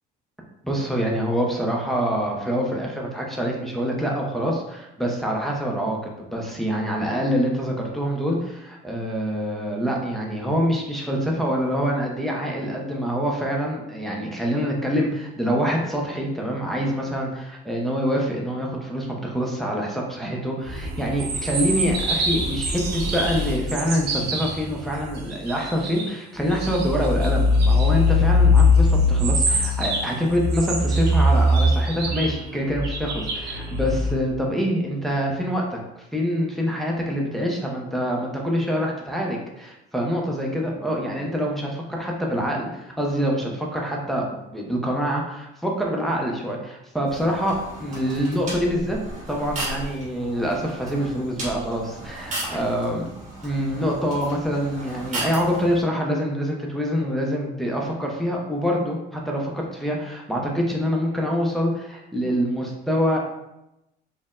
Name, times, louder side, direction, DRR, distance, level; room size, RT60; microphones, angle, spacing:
voice 1, 0.6-49.0 49.3-53.1 53.4-63.2, equal, ahead, -2 dB, 0.4 m, -25 dB
sound 1, 20.6-26.1 26.4-34.1, left 2 dB, 65° right, 0.7 m, -22 dB
sound 2, 47.1-55.8, right 2 dB, 45° right, 1.5 m, -35 dB
4.3 x 2.0 x 3.5 m, 0.90 s
cardioid pair, 170°, 19 cm